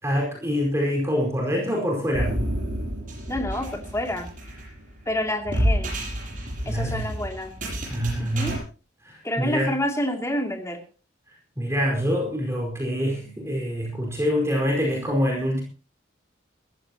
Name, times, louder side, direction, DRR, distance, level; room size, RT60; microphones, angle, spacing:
voice 1, 0.0-2.4 6.6-7.1 7.9-8.5 9.0-9.7 11.6-15.6, equal, 15° right, 0 dB, 4.8 m, -25 dB
sound 1, 2.1-8.6, equal, 45° right, 7.8 m, -29 dB
voice 2, 3.3-4.3 5.1-6.0 6.7-7.5 8.2-8.6 9.2-10.8, left 1 dB, 15° left, 4 dB, 2.6 m, -28 dB
20.5 x 15.0 x 2.9 m, 0.34 s
head